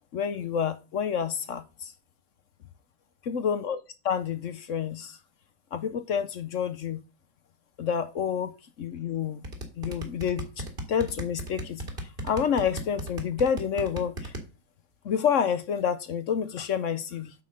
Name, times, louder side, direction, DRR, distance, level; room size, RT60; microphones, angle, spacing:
voice 1, 0.1-1.9 3.2-5.2 5.7-7.0 7.8-9.4 9.8-11.8 12.2-14.3 15.0-17.3, left 7 dB, 55° left, 0.9 m, -29 dB
sound 1, 9.4-14.4, right 1 dB, 30° right, 2.1 m, -34 dB
8.5 x 5.6 x 6.5 m
omnidirectional pair, 1.9 m